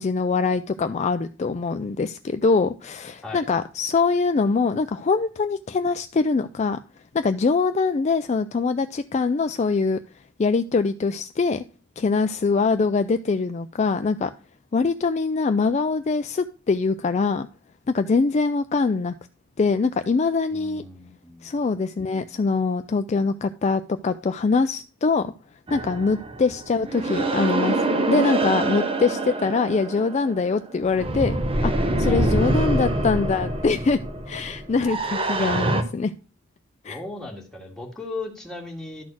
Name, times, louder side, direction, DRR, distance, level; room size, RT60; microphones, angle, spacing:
voice 1, 0.0-6.8 7.1-10.0 10.4-11.6 12.0-14.3 14.7-17.5 17.9-19.1 19.6-20.8 21.4-25.3 25.7-27.8 28.1-31.4 31.6-34.0 34.3-36.1 36.8-37.0, left 4 dB, 35° left, 9 dB, 0.3 m, -23 dB
voice 2, 20.5-21.5 32.0-32.6 36.8-39.0, left 3 dB, 5° left, -1 dB, 1.9 m, -37 dB
sound 1, 25.7-35.8, right 2 dB, 30° right, 0.9 m, -25 dB
12.0 x 4.2 x 6.1 m, 0.37 s
head